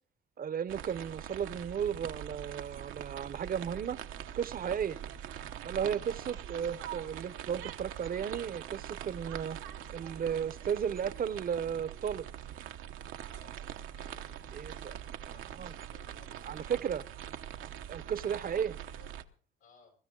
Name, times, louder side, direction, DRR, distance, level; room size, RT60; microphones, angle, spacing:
voice 1, 0.4-4.0 4.4-5.0 5.6-9.6 9.9-12.3 14.5-14.9 15.6-15.7 16.5-17.0 17.9-18.8, right 8 dB, 45° right, 17 dB, 0.8 m, -34 dB
sound 1, 0.7-19.2, right 10 dB, 90° right, 1.0 m, -43 dB
voice 2, 6.1-6.4 13.3-13.7 13.9-17.2 18.2-18.6 19.0-19.1 19.6-19.9, left 6 dB, 90° left, 1 dB, 7.6 m, -61 dB
22.5 x 13.0 x 3.8 m, 0.39 s
cardioid pair, 90°, 20 cm